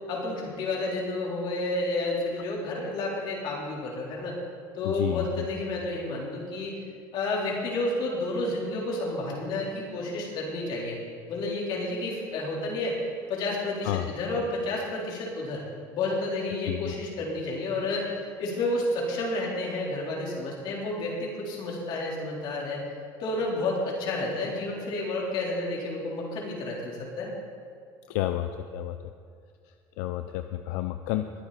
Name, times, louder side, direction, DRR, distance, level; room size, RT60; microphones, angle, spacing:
voice 1, 0.1-4.4 4.7-6.8 7.1-11.0 11.3-13.0 13.3-15.6 15.9-22.8 23.2-27.3, left 2 dB, 60° left, -3 dB, 4.0 m, -30 dB
voice 2, 4.8-5.2 13.8-14.0 16.6-16.9 28.1-29.0 30.0-31.3, left 14 dB, 90° left, 8 dB, 0.5 m, -30 dB
21.5 x 9.1 x 4.3 m, 2.3 s
cardioid pair, 120°, 9 cm